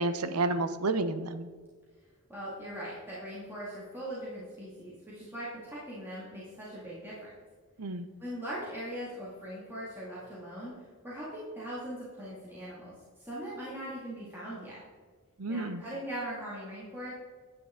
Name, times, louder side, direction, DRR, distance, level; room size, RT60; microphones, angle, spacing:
voice 1, 0.0-1.5 7.8-8.1 15.4-15.8, right 2 dB, 85° right, 12 dB, 0.7 m, -30 dB
voice 2, 2.3-7.2 8.2-10.7 11.0-14.8 15.5-17.1, equal, 10° right, -9 dB, 2.1 m, -40 dB
9.7 x 8.6 x 3.7 m, 1.5 s
head